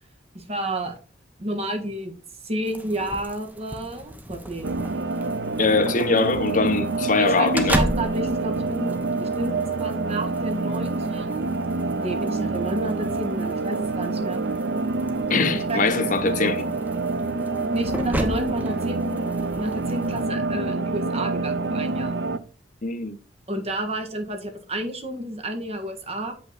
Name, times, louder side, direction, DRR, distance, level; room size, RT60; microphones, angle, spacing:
voice 1, 0.3-1.0 1.4-2.1 2.4-4.7 7.2-7.5 7.7-11.5 12.0-14.4 15.7-16.7 17.7-22.2 23.5-26.3, right 1 dB, 35° right, 1.5 m, -31 dB
sound 1, 2.6-20.3, equal, 10° right, 0.8 m, -35 dB
sound 2, 4.6-22.4, right 3 dB, 75° right, 0.6 m, -27 dB
voice 2, 5.6-7.8 15.3-16.6 22.8-23.2, left 4 dB, 45° left, 0.8 m, -22 dB
7.8 x 5.5 x 4.0 m
head